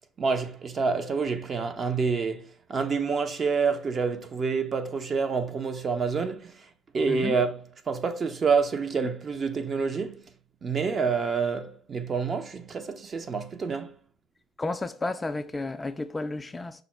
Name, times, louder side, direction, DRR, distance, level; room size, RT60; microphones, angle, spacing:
voice 1, 0.2-10.3 10.6-13.9, right 5 dB, 40° right, 0.6 m, -28 dB
voice 2, 14.6-16.8, left 2 dB, 20° left, 0.3 m, -32 dB
5.0 x 2.1 x 4.4 m
supercardioid pair, 75°, 0 cm